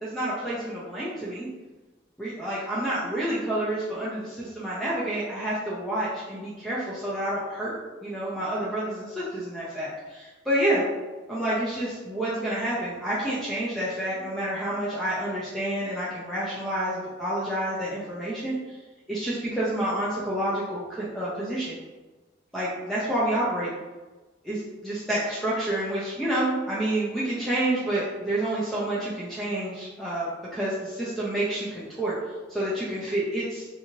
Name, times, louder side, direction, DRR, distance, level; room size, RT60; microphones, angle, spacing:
voice 1, 0.0-1.5 2.2-7.7 8.0-10.8 11.3-18.6 19.1-21.8 22.5-23.7 24.4-32.2 32.5-33.7, right 1 dB, ahead, -9 dB, 0.4 m, -29 dB
2.9 x 2.8 x 2.6 m, 1.2 s
head